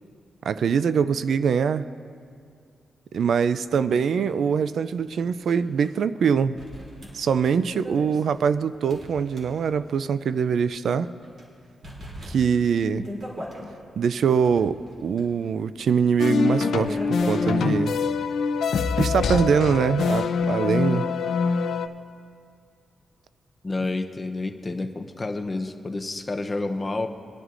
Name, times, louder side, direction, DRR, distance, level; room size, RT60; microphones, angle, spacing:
voice 1, 0.4-1.8 3.1-6.6 7.1-11.1 12.2-13.1 14.0-17.9 19.0-21.1, right 6 dB, 65° right, 14 dB, 0.3 m, -23 dB
sound 1, 5.5-5.6 5.8-5.9 6.6-10.0 10.3-10.4 11.0-11.4 11.8-13.7 14.2-17.5, equal, 45° right, 2.8 m, -39 dB
sound 2, 16.2-21.9, left 5 dB, 70° left, 0.5 m, -24 dB
voice 2, 23.6-27.1, left 2 dB, 20° left, 5 dB, 0.7 m, -29 dB
22.5 x 11.0 x 2.5 m, 2.3 s
wide cardioid pair, 140°, 0 cm